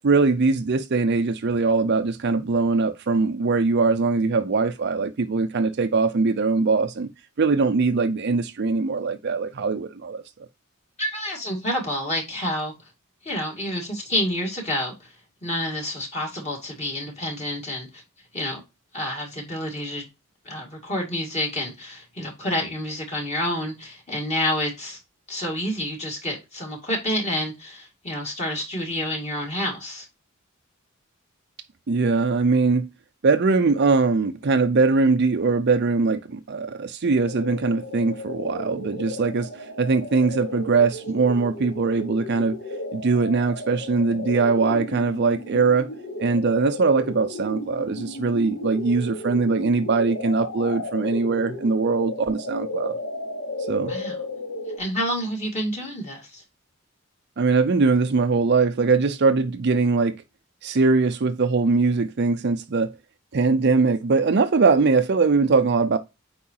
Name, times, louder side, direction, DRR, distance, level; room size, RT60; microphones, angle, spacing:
voice 1, 0.0-7.1 7.4-10.2 31.9-32.9 33.2-42.6 42.9-45.9 46.2-53.0 53.7-53.9 57.4-60.2 60.6-62.9 63.3-66.0, right 4 dB, 50° right, 0.5 m, -21 dB
voice 2, 11.0-12.7 13.2-15.1 15.4-18.0 18.3-18.6 18.9-20.1 20.5-25.0 25.3-30.1 53.9-54.1 54.8-56.4, left 1 dB, 30° left, 2.2 m, -28 dB
sound 1, 37.2-54.8, left 2 dB, 60° left, 1.2 m, -34 dB
8.6 x 4.7 x 2.8 m
head